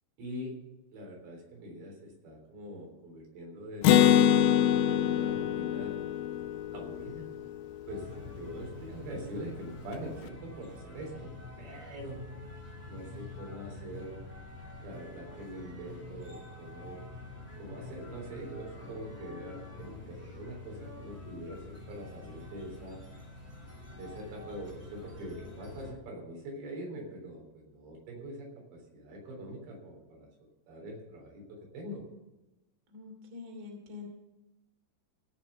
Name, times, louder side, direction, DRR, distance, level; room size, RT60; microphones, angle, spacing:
voice 1, 0.2-0.6 0.9-4.0 4.9-6.0 6.7-7.3 7.9-12.2 12.9-14.1 14.8-17.0 17.6-23.0 23.9-32.0, equal, 90° right, 0 dB, 5.9 m, -43 dB
Acoustic guitar, 3.8-7.5, left 10 dB, 85° left, 2.1 m, -24 dB
sound 1, 7.9-25.9, left 2 dB, 5° right, 2.0 m, -46 dB
voice 2, 32.9-34.1, left 4 dB, 30° right, 1 dB, 2.9 m, -45 dB
17.5 x 6.2 x 6.9 m, 1.0 s
omnidirectional pair, 4.9 m